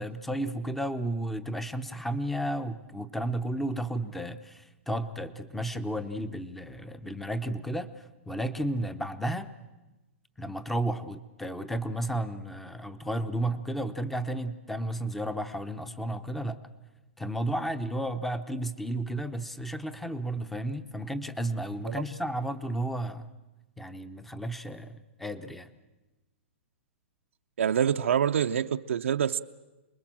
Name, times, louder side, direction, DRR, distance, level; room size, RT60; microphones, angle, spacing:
voice 1, 0.0-9.5 10.4-16.6 17.2-23.3 23.8-25.7, right 1 dB, 5° left, 13 dB, 0.8 m, -33 dB
voice 2, 27.6-29.4, right 8 dB, 80° right, 6 dB, 0.7 m, -26 dB
27.5 x 21.0 x 7.6 m, 1.1 s
hypercardioid pair, 155°, 7 cm